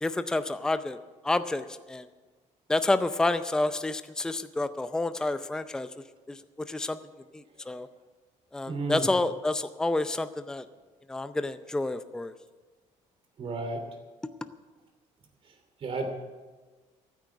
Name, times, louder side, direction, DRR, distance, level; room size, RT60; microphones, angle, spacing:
voice 1, 0.0-1.0 1.2-2.1 2.7-5.9 6.3-6.4 6.7-7.0 7.3-7.9 8.5-10.7 11.1-12.3, left 2 dB, 5° left, 11 dB, 0.5 m, -29 dB
voice 2, 8.7-9.1 13.4-13.8 15.8-16.1, right 3 dB, 45° right, 5 dB, 2.7 m, -32 dB
14.5 x 9.2 x 7.7 m, 1.3 s
cardioid pair, 135°, 13 cm